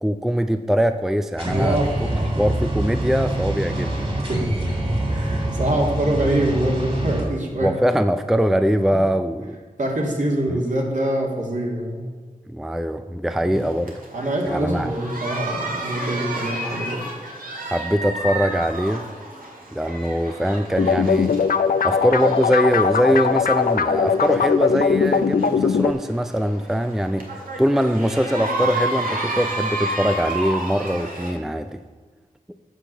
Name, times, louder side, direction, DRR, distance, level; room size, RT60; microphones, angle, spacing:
voice 1, 0.0-1.8 2.3-4.1 7.6-9.6 10.5-10.6 12.5-13.9 14.5-14.9 17.7-19.0 19.7-21.4 21.8-31.8, equal, 5° right, 9 dB, 0.4 m, -22 dB
sound 1, 1.4-7.2, right 1 dB, 45° right, 3.2 m, -24 dB
voice 2, 1.5-2.3 4.3-4.4 5.1-7.7 9.8-12.1 13.3-13.7 14.1-17.0 21.7-21.9, right 1 dB, 60° right, -1 dB, 2.3 m, -25 dB
sound 2, 13.5-31.3, right 2 dB, 80° right, 1.9 m, -31 dB
sound 3, 20.8-25.9, left 6 dB, 85° left, 0.4 m, -20 dB
8.2 x 5.9 x 6.7 m, 1.5 s
wide cardioid pair, 55°, 14 cm